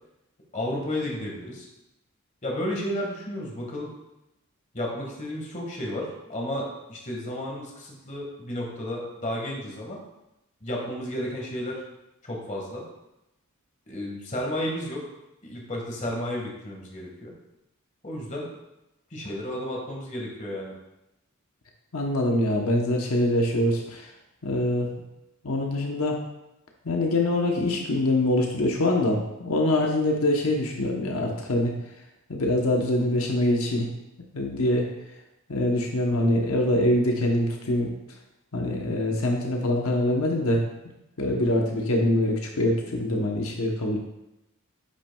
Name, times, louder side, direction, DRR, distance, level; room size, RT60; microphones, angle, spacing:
voice 1, 0.5-1.7 2.4-3.9 4.7-10.0 10.6-11.8 12.2-12.8 13.9-15.0 15.4-17.3 18.0-18.5 19.1-20.7 41.3-41.5, left 1 dB, 35° left, -1 dB, 1.6 m, -32 dB
voice 2, 21.9-24.1 24.4-24.9 25.4-26.2 26.8-31.7 32.3-33.9 34.3-34.9 35.5-37.9 38.5-40.6 41.2-44.0, left 1 dB, 85° left, 1 dB, 0.9 m, -24 dB
9.8 x 6.0 x 2.3 m, 0.91 s
head